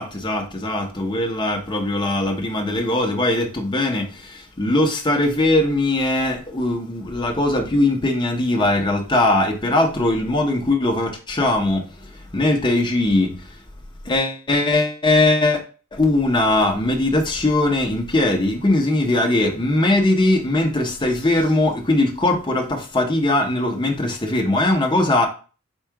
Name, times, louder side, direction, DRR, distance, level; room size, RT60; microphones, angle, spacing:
voice 1, 0.0-4.1 4.6-11.8 12.3-13.3 14.1-15.6 15.9-25.3, left 2 dB, 20° left, 0.8 m, -20 dB
4.5 x 2.4 x 4.6 m
head